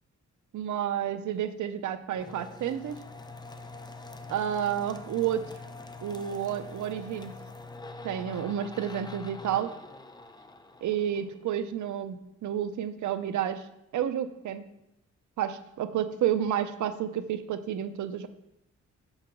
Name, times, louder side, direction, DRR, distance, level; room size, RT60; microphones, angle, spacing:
voice 1, 0.5-3.0 4.3-5.4 6.0-7.3 8.0-9.7 10.8-13.7 13.9-14.7 15.4-18.3, right 10 dB, 85° right, 11 dB, 0.7 m, -30 dB
sound 1, 2.1-11.7, left 3 dB, 15° left, 0.6 m, -45 dB
5.7 x 5.7 x 6.9 m, 0.86 s
cardioid pair, 120°, 29 cm